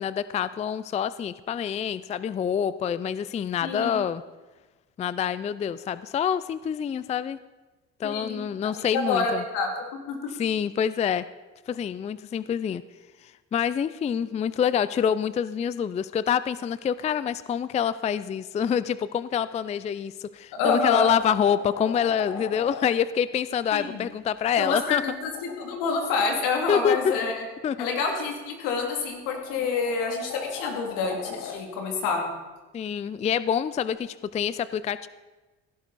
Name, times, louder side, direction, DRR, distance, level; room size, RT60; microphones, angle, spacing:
voice 1, 0.0-4.2 5.0-7.4 8.0-9.4 10.4-11.3 11.7-12.8 13.2-25.0 26.7-27.0 27.6-27.9 32.7-35.1, left 8 dB, 20° left, 16 dB, 0.3 m, -26 dB
voice 2, 3.6-4.0 8.0-8.4 8.7-9.7 10.1-10.2 20.5-21.1 23.7-24.0 24.6-27.4 27.8-32.3, left 4 dB, 80° left, 2 dB, 2.8 m, -27 dB
sound 1, 20.1-20.2 20.7-22.9 24.6-27.3 28.8-31.6 33.9-34.0, left 6 dB, 60° left, 1.4 m, -40 dB
16.0 x 11.0 x 4.1 m, 1.2 s
supercardioid pair, 90°, 32 cm